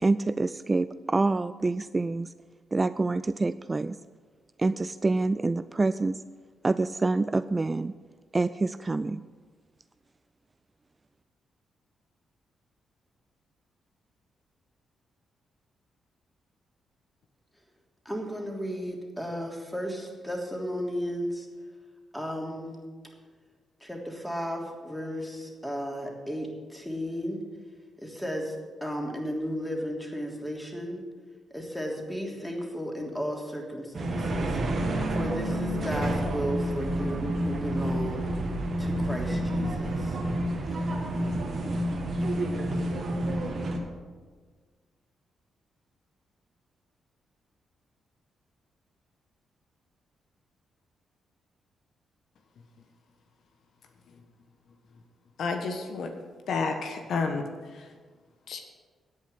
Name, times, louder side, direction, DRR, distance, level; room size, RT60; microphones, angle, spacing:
voice 1, 0.0-2.3 2.7-4.0 4.6-6.2 6.6-7.9 8.3-9.2, right 3 dB, 30° right, 14 dB, 0.3 m, -26 dB
voice 2, 18.0-21.5 22.1-22.8 23.8-27.4 28.0-31.0 31.5-34.6 35.1-38.3 38.8-40.2 40.9-41.1, equal, 5° left, 0 dB, 3.2 m, -34 dB
sound 1, 33.9-43.8, right 1 dB, 50° right, 2.0 m, -29 dB
voice 3, 55.4-56.1 56.5-57.5 57.7-57.9 58.5-58.6, left 4 dB, 65° left, 5 dB, 1.2 m, -30 dB
10.0 x 8.7 x 8.2 m, 1.5 s
hypercardioid pair, 40°, 0 cm